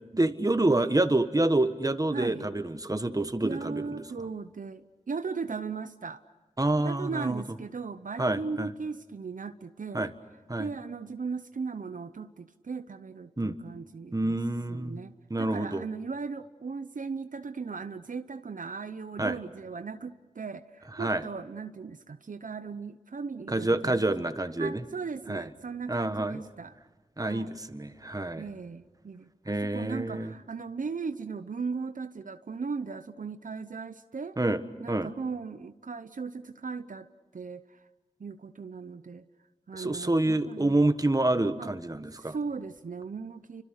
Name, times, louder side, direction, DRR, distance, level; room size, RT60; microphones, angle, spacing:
voice 1, 0.1-4.0 6.6-7.4 8.2-8.7 9.9-10.1 10.5-10.7 13.4-13.6 14.1-15.0 15.3-15.8 19.2-19.4 21.0-21.2 23.5-24.8 25.3-25.5 25.9-26.4 27.2-28.4 29.5-30.3 34.4-34.6 34.9-35.1 39.7-42.4, right 2 dB, 25° right, 10 dB, 1.5 m, -27 dB
voice 2, 2.1-2.5 3.4-6.2 6.8-10.1 10.6-14.4 14.7-24.1 24.6-26.7 27.2-27.6 28.3-34.4 34.8-37.1 37.3-37.6 38.2-39.2 39.7-40.8 41.6-41.7 42.2-43.6, right 5 dB, 75° right, 11 dB, 0.8 m, -37 dB
30.0 x 25.5 x 6.5 m, 1.2 s
wide cardioid pair, 45°, 14 cm